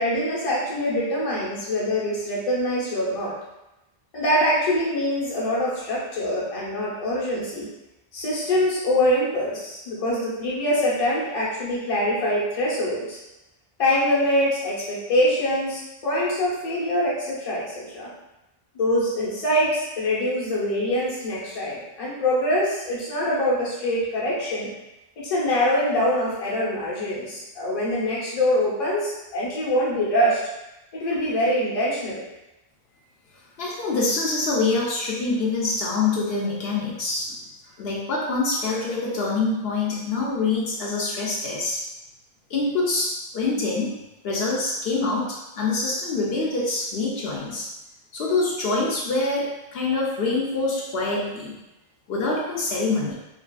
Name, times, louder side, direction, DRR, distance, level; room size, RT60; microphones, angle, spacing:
voice 1, 0.0-3.3 4.1-7.7 8.1-13.2 13.8-18.1 18.7-24.7 25.2-30.4 30.9-32.2, left 1 dB, 40° left, -6 dB, 0.7 m, -24 dB
voice 2, 33.6-37.4 37.8-41.8 42.5-44.0 44.2-47.7 48.1-51.5 52.1-53.1, left 3 dB, 75° left, -4 dB, 0.8 m, -25 dB
2.7 x 2.4 x 2.3 m, 0.95 s
omnidirectional pair, 1.0 m